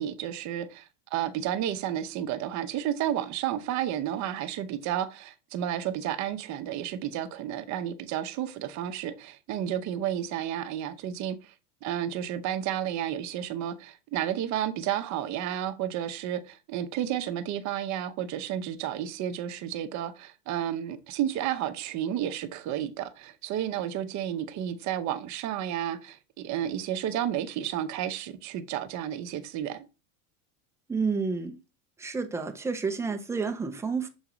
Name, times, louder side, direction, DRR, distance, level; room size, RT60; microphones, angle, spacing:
voice 1, 0.0-11.5 11.8-29.9, right 11 dB, 40° right, 0.8 m, -32 dB
voice 2, 30.9-31.6 32.0-34.1, right 4 dB, 5° right, 0.5 m, -30 dB
7.1 x 2.7 x 4.9 m
supercardioid pair, 140°, 45 cm